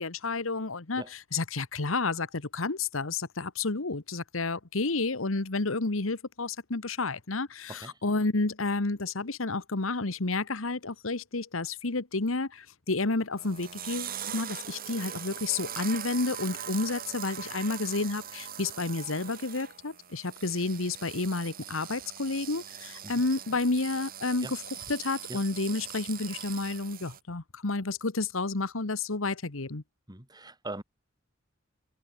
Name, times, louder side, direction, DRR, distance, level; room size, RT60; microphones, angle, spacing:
voice 1, 0.0-1.0 1.3-24.5 24.9-29.8, left 3 dB, 85° left, 1.5 m, -30 dB
voice 2, 7.7-8.0 23.0-23.1 24.4-24.5 25.3-25.4 30.1-30.8, right 2 dB, 20° right, 3.7 m, -41 dB
sound 1, 13.4-27.2, right 10 dB, 45° right, 1.8 m, -41 dB
head